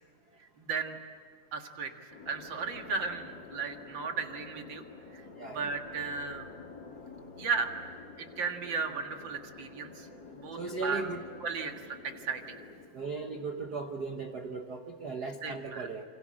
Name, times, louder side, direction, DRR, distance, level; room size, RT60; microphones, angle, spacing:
voice 1, 0.6-1.0 1.5-1.9 2.3-4.9 5.1-6.5 7.4-7.7 8.2-10.1 10.3-11.0 11.4-12.4 15.4-15.9, right 5 dB, 40° right, 4 dB, 2.1 m, -35 dB
sound 1, 2.1-12.9, left 4 dB, 35° left, 2.8 m, -49 dB
voice 2, 5.4-5.7 10.6-11.2 12.9-16.0, right 3 dB, 60° right, 5 dB, 1.0 m, -37 dB
28.0 x 25.5 x 7.7 m, 2.2 s
omnidirectional pair, 3.7 m